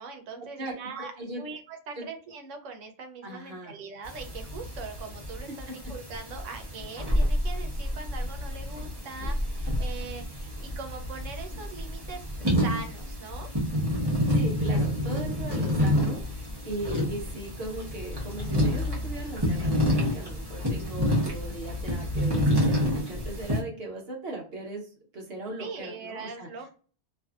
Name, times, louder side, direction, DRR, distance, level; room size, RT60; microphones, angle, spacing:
voice 1, 0.0-13.5 25.6-26.7, right 4 dB, 90° right, 6 dB, 1.0 m, -41 dB
voice 2, 0.6-1.4 2.0-2.1 3.2-3.7 5.5-5.7 14.3-26.5, right 2 dB, 60° right, 0 dB, 1.0 m, -38 dB
sound 1, 4.0-23.6, equal, 25° right, 0.9 m, -28 dB
2.6 x 2.6 x 2.3 m, 0.40 s
omnidirectional pair, 1.2 m